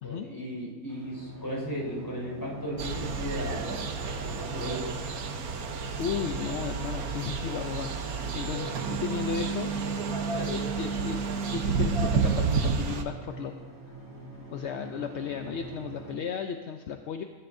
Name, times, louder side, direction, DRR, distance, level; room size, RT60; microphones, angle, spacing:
voice 1, 0.0-3.7 4.2-4.9, equal, 15° left, -3 dB, 5.2 m, -36 dB
sound 1, 0.9-16.2, right 2 dB, 10° right, 2.0 m, -44 dB
sound 2, 2.8-13.0, right 5 dB, 70° right, 1.4 m, -30 dB
voice 2, 6.0-7.9 8.3-9.7 10.1-11.2 11.5-13.5 14.5-17.2, left 7 dB, 60° left, 6 dB, 0.8 m, -34 dB
21.0 x 12.5 x 2.7 m, 1.4 s
omnidirectional pair, 1.6 m